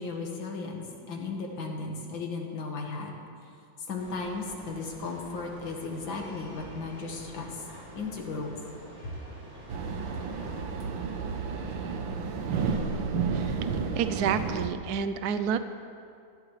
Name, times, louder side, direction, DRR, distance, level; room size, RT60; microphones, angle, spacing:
voice 1, 0.0-3.2 3.9-7.6 8.0-8.6 9.0-9.1, left 3 dB, 85° left, 0 dB, 2.3 m, -35 dB
sound 1, 4.0-10.6, right 1 dB, 35° right, 3.4 m, -47 dB
sound 2, 9.7-14.7, right 5 dB, 90° right, 1.7 m, -31 dB
voice 2, 14.0-15.6, right 7 dB, 65° right, 10 dB, 1.1 m, -28 dB
19.0 x 14.5 x 3.3 m, 2.4 s
omnidirectional pair, 2.0 m